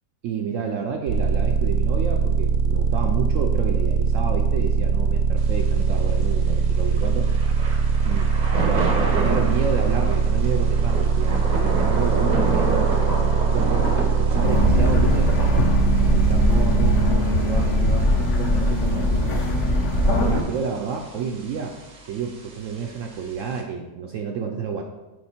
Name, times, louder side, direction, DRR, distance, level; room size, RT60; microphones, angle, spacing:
voice 1, 0.2-7.3 8.0-8.3 8.6-15.3 16.0-19.5 20.1-21.8 22.1-24.8, right 6 dB, 70° right, 3 dB, 0.7 m, -30 dB
sound 1, 1.1-17.1, right 6 dB, 85° right, 1.2 m, -21 dB
Thunder / Rain, 5.4-23.6, right 2 dB, 40° right, 0.6 m, -31 dB
sound 2, 14.4-20.4, left 1 dB, 50° left, 1.1 m, -21 dB
7.7 x 3.2 x 4.4 m, 1.1 s
omnidirectional pair, 1.8 m